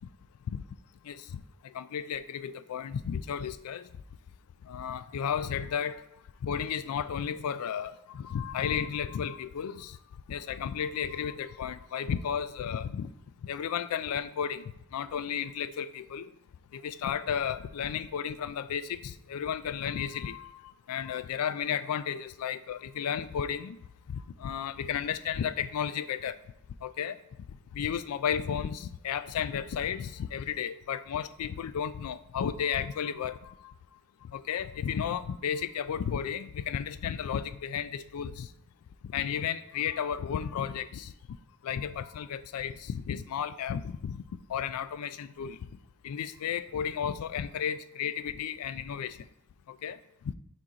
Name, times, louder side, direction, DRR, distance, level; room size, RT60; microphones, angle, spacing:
voice 1, 1.0-3.9 4.6-6.0 6.4-10.0 10.3-13.1 13.4-16.3 16.7-23.8 24.1-26.4 26.8-27.2 27.7-33.7 34.2-38.5 39.0-41.1 41.6-44.2 44.5-45.6 46.0-49.2 49.7-50.3, left 8 dB, 80° left, 14 dB, 0.3 m, -33 dB
6.1 x 4.4 x 3.9 m, 0.79 s
head